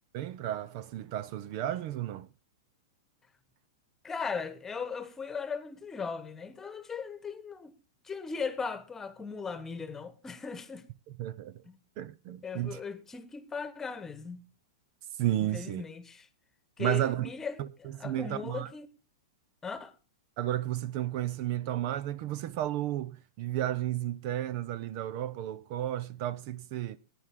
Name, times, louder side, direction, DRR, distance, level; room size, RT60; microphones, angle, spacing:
voice 1, 0.1-2.3 11.2-11.5 12.0-12.8 15.2-15.8 16.8-17.3 17.6-17.7 18.0-18.7 20.4-27.0, right 13 dB, 50° right, 0.7 m, -32 dB
voice 2, 4.0-7.7 8.0-10.8 11.6-11.8 12.4-14.4 15.4-16.3 16.8-18.9 19.6-19.9, left 5 dB, 15° left, 1.3 m, -38 dB
14.5 x 10.0 x 3.8 m
hypercardioid pair, 125°, 3 cm